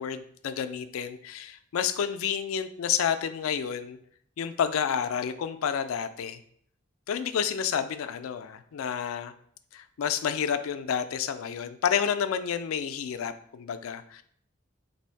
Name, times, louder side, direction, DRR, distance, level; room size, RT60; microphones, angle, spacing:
voice 1, 0.0-4.0 4.4-6.4 7.1-9.3 9.7-14.2, left 8 dB, 85° left, 10 dB, 0.3 m, -30 dB
3.4 x 2.7 x 4.4 m, 0.63 s
head